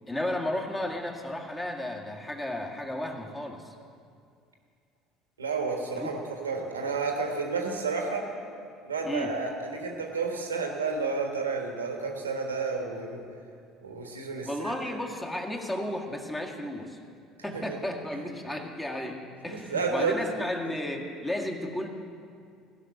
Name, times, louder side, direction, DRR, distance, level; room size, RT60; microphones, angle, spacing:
voice 1, 0.1-3.7 5.9-6.1 9.0-9.4 14.4-17.0 17.4-21.9, left 1 dB, 15° left, 1 dB, 1.8 m, -33 dB
voice 2, 5.4-8.2 8.8-13.2 13.8-14.7 17.5-17.8 19.5-20.2 20.6-20.7, right 4 dB, 85° right, 2 dB, 1.4 m, -31 dB
16.5 x 6.2 x 8.9 m, 2.4 s
figure-of-eight pair, 65°, 0 cm